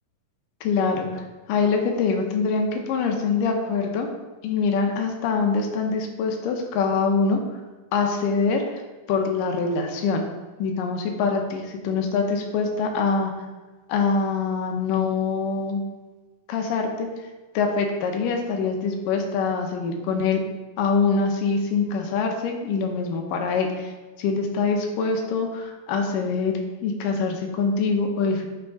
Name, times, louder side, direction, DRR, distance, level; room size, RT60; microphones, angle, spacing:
voice 1, 0.6-1.2 1.5-4.1 4.4-7.4 7.9-8.8 9.1-10.2 10.6-13.3 13.9-15.8 16.5-17.1 17.5-20.4 20.8-23.9 24.2-26.5 26.8-28.5, left 4 dB, 75° left, 3 dB, 2.5 m, -24 dB
9.6 x 6.7 x 3.7 m, 1.2 s
omnidirectional pair, 4.0 m